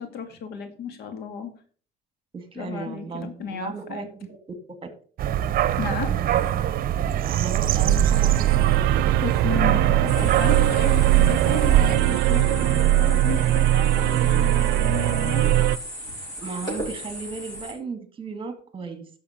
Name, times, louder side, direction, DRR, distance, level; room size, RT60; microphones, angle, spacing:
voice 1, 0.0-1.5 2.5-4.1 5.8-6.1 9.2-15.6, left 6 dB, 75° left, 8 dB, 2.1 m, -33 dB
voice 2, 2.3-4.3 7.4-9.0 16.4-19.1, right 5 dB, 30° right, 9 dB, 2.1 m, -35 dB
sound 1, 5.2-12.0, right 10 dB, 60° right, 0.8 m, -24 dB
sound 2, 7.4-15.8, right 14 dB, 85° right, 0.6 m, -21 dB
sound 3, 10.1-17.7, equal, 20° left, 6.2 m, -36 dB
11.5 x 6.6 x 5.1 m, 0.42 s
cardioid pair, 110°, 17 cm